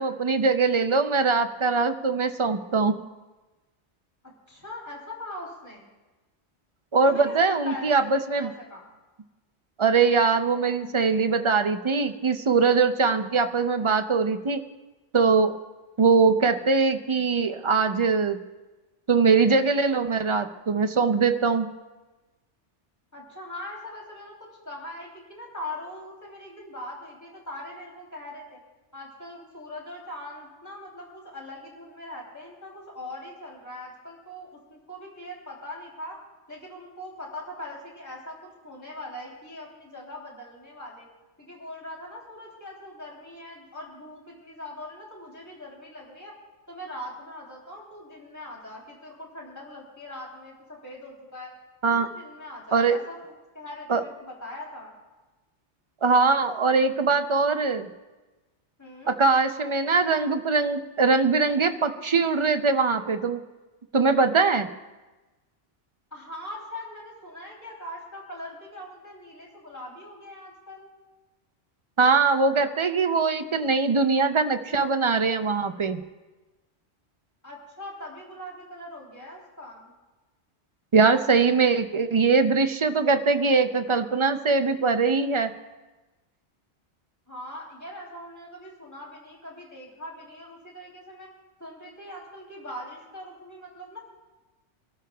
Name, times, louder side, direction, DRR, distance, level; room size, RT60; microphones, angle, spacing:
voice 1, 0.0-3.0 6.9-8.5 9.8-14.6 15.1-15.6 16.0-18.4 19.1-21.7 51.8-52.1 52.7-53.0 53.9-54.0 56.0-57.9 59.1-63.4 63.9-64.7 72.0-76.0 80.9-85.5, right 4 dB, 40° right, 8 dB, 0.4 m, -22 dB
voice 2, 4.5-5.9 7.0-8.9 23.1-24.3 24.6-28.6 28.9-36.2 36.5-38.4 38.6-41.1 41.4-46.3 46.7-51.5 51.8-54.9 58.8-59.1 66.1-70.9 77.4-79.9 87.3-91.3 91.6-94.0, left 1 dB, 15° left, -4 dB, 3.2 m, -41 dB
25.5 x 13.0 x 2.3 m, 1.2 s
omnidirectional pair, 1.2 m